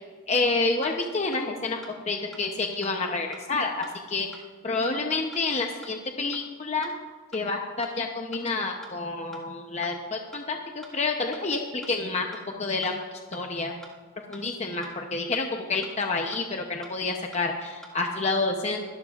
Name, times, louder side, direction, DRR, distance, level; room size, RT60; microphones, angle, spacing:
voice 1, 0.3-1.8 2.1-6.9 7.3-13.7 14.3-18.9, left 3 dB, 30° left, 2 dB, 0.7 m, -29 dB
sound 1, 0.8-0.9 1.3-1.4 1.8-1.9 2.3-2.4 2.8-2.9 3.3-3.4 3.8-3.9 4.3-4.4 4.8-4.9 5.3-5.4 5.8-5.9 6.3-6.4 6.8-6.9 7.3-7.4 7.8-7.9 8.3-8.4 8.8-8.9 9.3-9.4 9.8-9.9 10.3-10.4 10.8-10.9 11.3-11.4 11.8-11.9 12.3-12.4 12.8-12.9 13.3-13.4 13.8-13.9 14.3-14.4 14.8-14.9 15.3-15.4 15.8-15.9 16.3-16.4 16.8-16.9 17.3-17.4 17.8-17.9, equal, 5° left, 1.7 m, -46 dB
23.0 x 12.0 x 2.5 m, 1.5 s
head